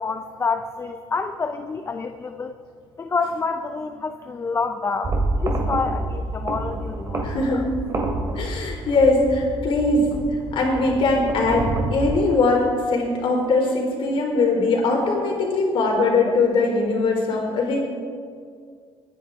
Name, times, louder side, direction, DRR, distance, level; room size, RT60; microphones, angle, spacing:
voice 1, 0.0-2.5 3.0-7.3 7.5-7.7 16.3-16.4, left 4 dB, 25° left, 8 dB, 0.6 m, -28 dB
sound 1, 5.0-12.2, right 2 dB, 35° right, 2.6 m, -28 dB
voice 2, 7.2-7.7 8.3-10.1 10.5-17.8, left 3 dB, 60° left, -1 dB, 4.0 m, -21 dB
21.5 x 10.0 x 3.7 m, 2.1 s
cardioid pair, 105°, 10 cm